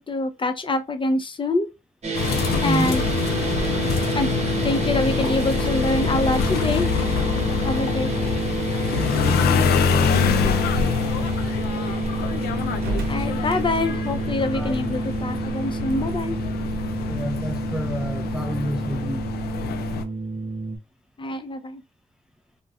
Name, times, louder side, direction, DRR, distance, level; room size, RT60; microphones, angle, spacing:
voice 1, 0.0-1.7 2.6-3.0 4.1-4.3 4.6-6.9 7.6-8.1 13.1-16.4 21.2-21.8, left 2 dB, 30° left, 0.6 m, -25 dB
sound 1, 2.0-20.8, right 3 dB, 45° right, 0.9 m, -28 dB
sound 2, 2.1-20.0, left 7 dB, 85° left, 0.4 m, -25 dB
voice 2, 2.6-3.0 8.9-10.6 14.5-14.7 17.1-19.2, equal, 5° right, 0.5 m, -29 dB
Slam, 9.9-10.3 11.2-11.4 12.7-14.0, right 2 dB, 85° right, 0.7 m, -32 dB
2.5 x 2.2 x 3.4 m
supercardioid pair, 50°, 16 cm